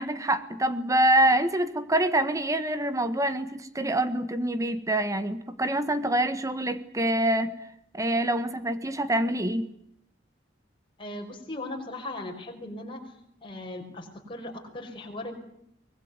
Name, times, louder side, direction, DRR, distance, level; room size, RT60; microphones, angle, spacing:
voice 1, 0.0-7.5 7.9-9.7, right 1 dB, 15° right, 11 dB, 1.4 m, -25 dB
voice 2, 11.0-13.1 13.4-15.3, left 1 dB, 30° left, 1 dB, 5.2 m, -38 dB
24.0 x 20.5 x 9.7 m, 0.76 s
head